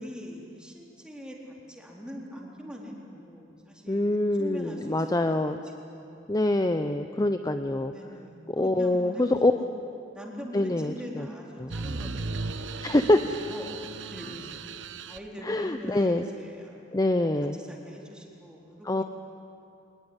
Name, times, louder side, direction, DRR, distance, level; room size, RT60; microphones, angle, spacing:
voice 1, 0.0-5.6 5.9-6.4 7.9-9.7 10.1-13.1 13.5-13.8 14.1-14.5 15.1-16.9 17.5-19.0, equal, 5° right, -2 dB, 4.0 m, -43 dB
voice 2, 3.9-5.6 6.3-7.9 8.5-9.5 10.5-11.3 11.6-11.7 12.8-13.2 15.4-16.3 16.9-17.6 18.9-19.0, left 1 dB, 20° left, 8 dB, 0.6 m, -25 dB
sound 1, 11.7-15.3, right 3 dB, 70° right, 1.0 m, -36 dB
22.5 x 21.0 x 9.9 m, 2.7 s
head